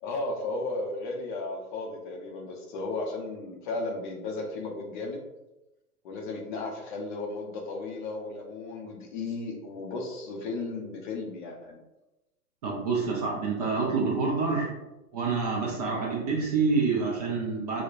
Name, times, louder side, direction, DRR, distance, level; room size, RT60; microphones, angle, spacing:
voice 1, 0.0-5.2 6.0-11.8, left 3 dB, 35° left, 1 dB, 0.6 m, -35 dB
voice 2, 12.6-14.7 15.1-17.8, right 4 dB, 30° right, -2 dB, 0.4 m, -27 dB
5.0 x 2.1 x 2.4 m, 0.98 s
hypercardioid pair, 125°, 46 cm